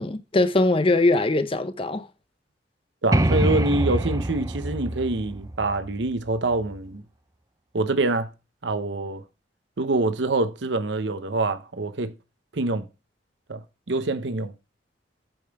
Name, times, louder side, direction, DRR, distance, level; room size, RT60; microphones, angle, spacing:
voice 1, 0.0-2.1, left 2 dB, 30° left, 0.6 m, -21 dB
voice 2, 3.0-7.0 7.7-8.3 8.6-9.2 9.8-12.1 12.5-12.8 13.5-14.5, right 2 dB, 70° right, 0.8 m, -25 dB
sound 1, 3.1-6.8, right 1 dB, 20° right, 0.5 m, -25 dB
9.0 x 5.4 x 4.7 m
head